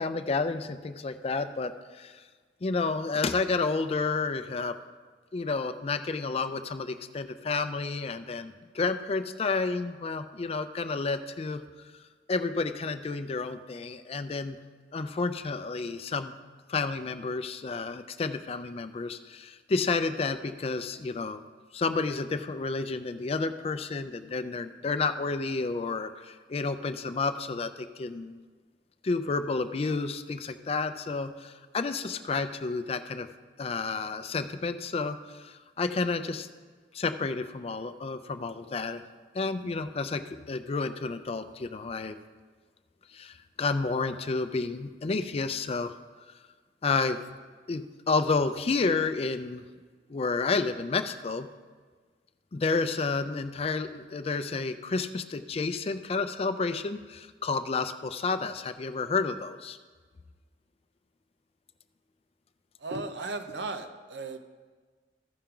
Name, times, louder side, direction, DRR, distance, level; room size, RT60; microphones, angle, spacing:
voice 1, 0.0-2.2 2.6-4.8 5.3-11.6 12.3-14.6 14.9-16.3 16.7-21.4 21.7-28.4 29.0-33.3 33.6-36.5 36.9-39.0 39.3-42.2 43.1-46.0 46.8-47.2 47.7-49.6 50.1-51.5 52.5-59.8, left 4 dB, 35° left, 10 dB, 0.4 m, -30 dB
voice 2, 62.8-64.6, right 3 dB, 75° right, 8 dB, 0.7 m, -36 dB
14.5 x 5.7 x 3.8 m, 1.4 s
head